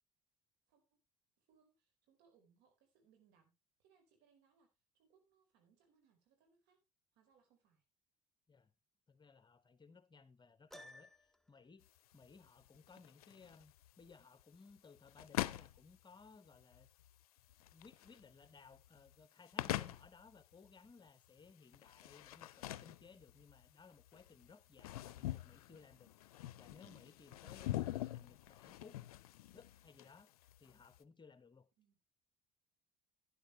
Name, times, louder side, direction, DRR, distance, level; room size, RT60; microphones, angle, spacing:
voice 1, 0.7-1.0 1.4-3.5 3.8-6.8 7.1-7.8 28.8-29.1 31.8-32.0, right 6 dB, 65° right, 4.4 m, -73 dB
voice 2, 9.1-11.9 12.1-16.9 17.7-26.1 26.5-29.0 29.5-30.3 30.6-31.7, left 4 dB, 25° left, 1.1 m, -61 dB
Piano, 10.7-11.6, left 1 dB, ahead, 1.0 m, -56 dB
sound 1, 11.8-31.0, left 14 dB, 85° left, 0.5 m, -46 dB
12.0 x 10.0 x 3.2 m
hypercardioid pair, 65°, 18 cm